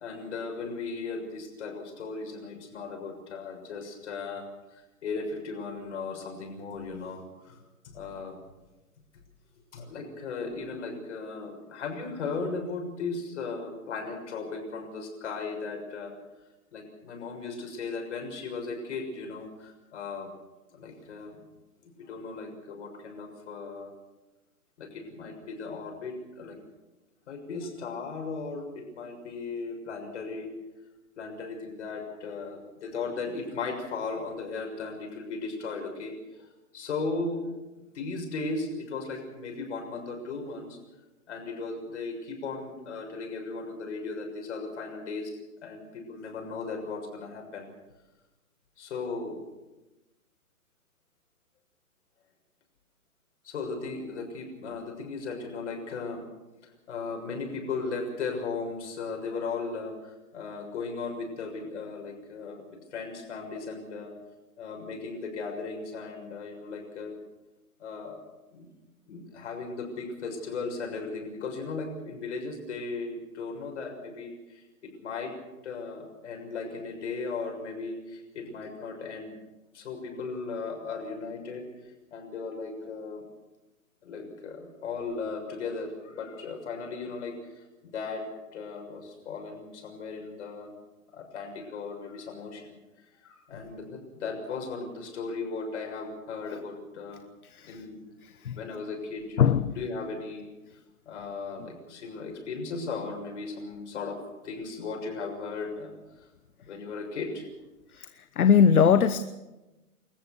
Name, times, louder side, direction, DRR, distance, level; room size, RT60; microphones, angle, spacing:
voice 1, 0.0-4.4 4.7-7.6 7.8-8.4 9.7-16.1 16.7-20.3 20.7-21.4 21.8-23.9 24.8-26.6 27.3-30.5 31.2-36.5 36.7-37.5 37.9-40.8 41.3-45.3 45.6-47.7 48.8-49.4 53.4-56.2 56.6-64.1 64.6-67.2 67.8-68.2 68.5-68.7 69.1-75.3 75.6-79.4 79.7-81.7 82.1-83.2 84.0-88.2 88.5-90.7 91.1-92.8 93.2-97.2 97.6-98.0 98.5-100.5 101.1-104.2 104.4-106.3 106.6-107.5, left 4 dB, 50° left, 3 dB, 6.6 m, -36 dB
voice 2, 97.4-97.9 98.2-98.6 99.4-99.7 107.9-109.2, left 7 dB, 70° left, 12 dB, 1.1 m, -22 dB
27.5 x 14.5 x 6.8 m, 1.1 s
hypercardioid pair, 150°, 45 cm